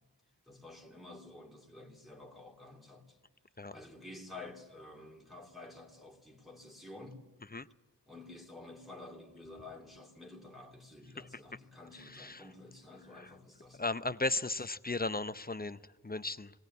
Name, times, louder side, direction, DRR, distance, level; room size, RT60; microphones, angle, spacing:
voice 1, 0.5-3.2 3.7-7.2 8.1-13.8, left 2 dB, ahead, 2.7 m, -51 dB
voice 2, 11.9-12.4 13.2-13.3 13.8-16.5, left 2 dB, 20° left, 0.6 m, -36 dB
20.0 x 18.0 x 9.3 m
wide cardioid pair, 50°, 42 cm